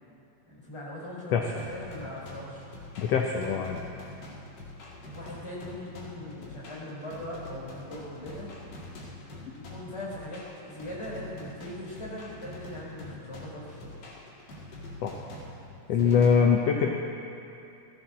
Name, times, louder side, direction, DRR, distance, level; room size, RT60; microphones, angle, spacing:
voice 1, 0.5-2.7 4.2-4.3 4.9-8.5 9.5-13.9 16.0-16.6, left 1 dB, 10° left, -6 dB, 3.8 m, -40 dB
sound 1, 1.6-16.3, left 1 dB, 90° left, 3.7 m, -45 dB
voice 2, 3.0-3.8 15.0-15.1 15.9-16.9, left 6 dB, 70° left, 1 dB, 1.5 m, -23 dB
18.0 x 14.5 x 4.2 m, 2.7 s
omnidirectional pair, 3.6 m